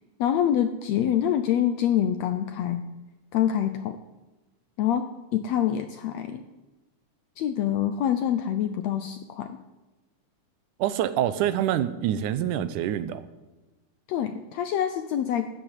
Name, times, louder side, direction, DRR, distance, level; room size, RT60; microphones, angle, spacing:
voice 1, 0.2-2.8 3.3-4.0 4.8-5.1 5.3-6.4 7.4-9.6 14.1-15.5, left 10 dB, 75° left, 9 dB, 1.7 m, -25 dB
voice 2, 10.8-13.2, right 11 dB, 80° right, 13 dB, 2.3 m, -26 dB
13.0 x 9.0 x 8.8 m, 1.1 s
omnidirectional pair, 3.6 m